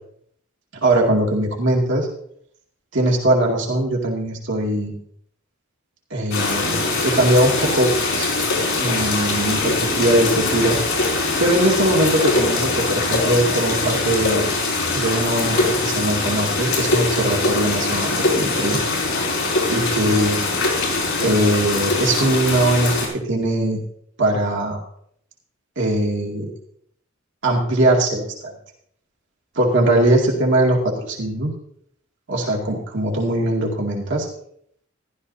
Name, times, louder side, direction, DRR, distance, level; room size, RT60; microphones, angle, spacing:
voice 1, 0.8-2.1 2.9-4.9 6.1-7.9 8.2-8.5 8.7-10.8 11.4-14.5 14.9-18.8 19.7-20.4 21.2-23.8 24.2-24.8 25.8-26.5 27.4-28.3 29.6-31.5 32.3-34.3, right 1 dB, 65° right, -1 dB, 2.3 m, -20 dB
sound 1, 6.3-23.1, left 3 dB, 75° left, 4.6 m, -22 dB
15.0 x 12.5 x 2.8 m, 0.66 s
head